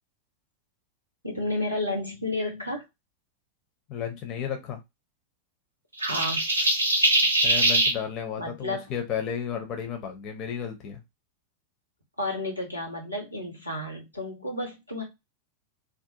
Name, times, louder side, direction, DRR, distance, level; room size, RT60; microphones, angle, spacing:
voice 1, 1.2-2.8 6.0-6.5 8.4-8.9 12.2-15.0, left 2 dB, 90° left, 1 dB, 1.0 m, -31 dB
voice 2, 3.9-4.8 7.4-11.0, left 8 dB, 35° left, 4 dB, 0.6 m, -33 dB
sound 1, 6.0-8.0, right 1 dB, 80° right, 0.5 m, -22 dB
2.4 x 2.2 x 2.7 m, 0.21 s
figure-of-eight pair, 90°, 0 cm